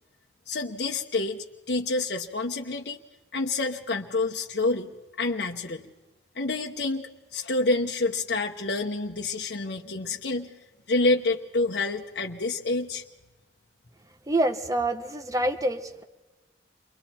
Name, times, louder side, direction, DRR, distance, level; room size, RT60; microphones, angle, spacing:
voice 1, 0.5-1.4 1.7-3.0 3.3-4.9 5.2-5.8 6.3-10.5 10.9-13.0, left 3 dB, 65° left, 0 dB, 1.0 m, -28 dB
voice 2, 14.3-16.0, right 1 dB, 20° right, 7 dB, 1.1 m, -26 dB
29.0 x 23.0 x 4.4 m, 1.1 s
head